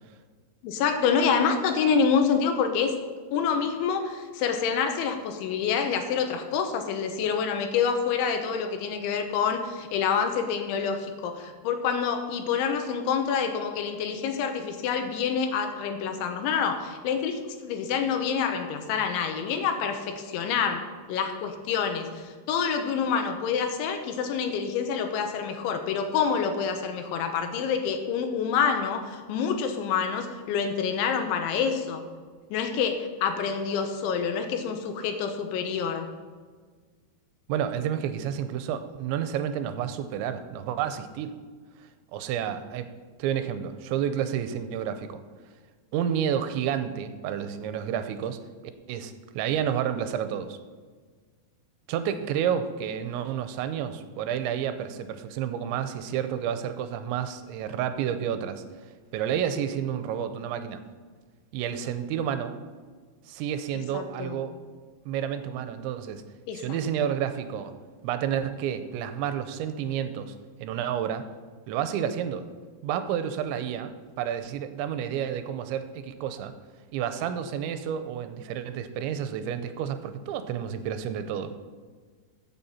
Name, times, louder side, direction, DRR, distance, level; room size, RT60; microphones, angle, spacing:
voice 1, 0.6-3.0 3.3-32.0 32.5-36.1 63.9-64.4 66.5-66.8, left 6 dB, 85° left, 6 dB, 3.4 m, -27 dB
voice 2, 37.5-41.3 42.1-42.9 43.2-45.2 45.9-48.4 48.9-50.6 51.9-58.6 59.1-60.8 61.5-62.6 63.3-64.6 65.1-66.2 66.5-67.7 68.0-70.3 70.6-71.3 71.7-72.5 72.8-73.9 74.2-76.5 76.9-81.6, right 9 dB, 90° right, 10 dB, 3.0 m, -30 dB
14.5 x 7.9 x 4.3 m, 1.5 s
omnidirectional pair, 5.3 m